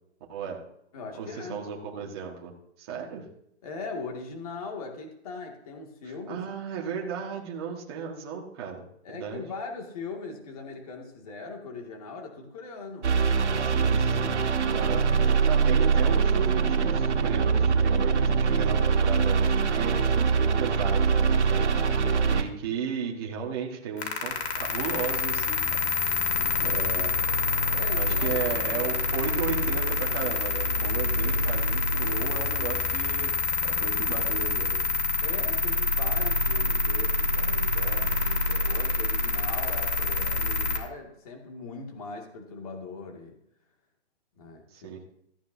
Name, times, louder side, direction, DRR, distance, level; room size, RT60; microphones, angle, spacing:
voice 1, 0.3-0.6 1.2-2.5 2.8-3.3 6.3-8.8 9.1-9.4 13.6-14.4 14.7-21.6 22.3-26.3 26.6-27.2 28.0-34.8 44.7-45.0, right 6 dB, 20° right, -2 dB, 1.7 m, -35 dB
voice 2, 0.9-1.7 3.6-6.4 9.0-13.2 13.4-13.8 21.6-22.4 26.3-26.6 27.7-28.4 35.2-43.4 44.4-45.0, left 4 dB, 30° left, 2 dB, 2.3 m, -40 dB
sound 1, 13.0-22.4, right 5 dB, 80° right, 1.8 m, -23 dB
sound 2, 24.0-40.8, left 3 dB, 65° left, 2.8 m, -26 dB
16.0 x 14.5 x 2.8 m, 0.76 s
hypercardioid pair, 170°, 34 cm